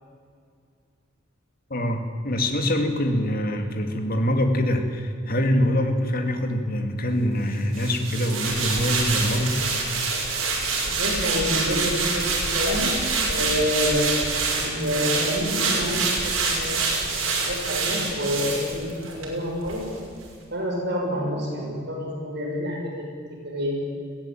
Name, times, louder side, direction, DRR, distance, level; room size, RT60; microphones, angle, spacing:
voice 1, 1.7-9.6, equal, 45° left, 5 dB, 2.4 m, -24 dB
sound 1, 7.7-19.3 19.7-19.8, right 4 dB, 80° right, 6.1 m, -26 dB
voice 2, 10.8-12.9 13.2-17.0 17.4-19.8 20.5-22.9 23.4-23.8, equal, 55° right, -2 dB, 6.7 m, -28 dB
22.0 x 16.5 x 9.2 m, 2.3 s
head